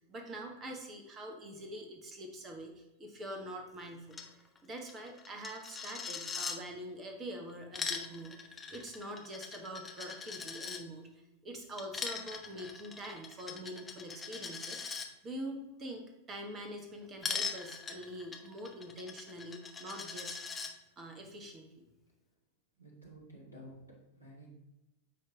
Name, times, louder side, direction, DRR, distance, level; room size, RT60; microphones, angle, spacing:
voice 1, 0.1-8.4 8.7-14.8 15.2-20.4 21.0-21.8, right 1 dB, 25° right, 3 dB, 1.4 m, -45 dB
Coin (dropping), 4.1-4.3 4.6-4.7 4.9-6.6 7.5-10.8 11.8-15.1 17.2-20.7, left 5 dB, 15° left, 0.7 m, -41 dB
voice 2, 22.8-24.5, equal, 90° left, -5 dB, 2.3 m, -52 dB
9.1 x 3.3 x 5.0 m, 0.96 s
figure-of-eight pair, 90°, 0 cm